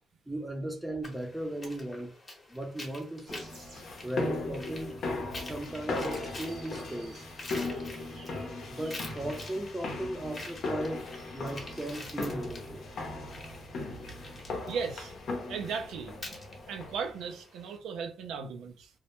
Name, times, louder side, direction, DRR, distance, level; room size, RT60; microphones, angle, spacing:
voice 1, 0.3-2.1 2.5-3.5 4.0-5.0 5.4-7.2 8.7-11.1 11.3-12.8, right 1 dB, 10° right, 0.6 m, -37 dB
sound 1, 1.0-17.8, left 2 dB, 35° left, 0.8 m, -48 dB
sound 2, 3.3-17.2, left 2 dB, 60° left, 0.6 m, -38 dB
sound 3, 3.3-12.0, right 4 dB, 65° right, 1.0 m, -59 dB
voice 2, 14.7-15.1 15.5-16.1 16.7-18.9, right 6 dB, 85° right, 0.4 m, -36 dB
2.1 x 2.1 x 2.9 m
cardioid pair, 90°, 0 cm